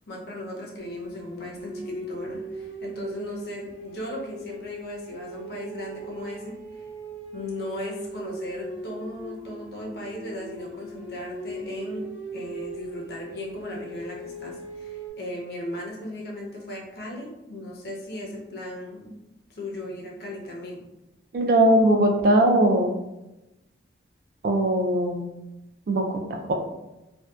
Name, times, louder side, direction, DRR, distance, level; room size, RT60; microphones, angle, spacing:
voice 1, 0.1-6.8 7.3-12.1 12.3-19.1 19.5-20.8, left 1 dB, 55° left, -1 dB, 0.5 m, -37 dB
sound 1, 0.8-15.1, right 1 dB, 80° left, 0.9 m, -39 dB
voice 2, 21.3-22.9 24.4-25.3 25.9-26.5, right 1 dB, 50° right, 3 dB, 0.3 m, -20 dB
2.6 x 2.1 x 2.2 m, 0.96 s
head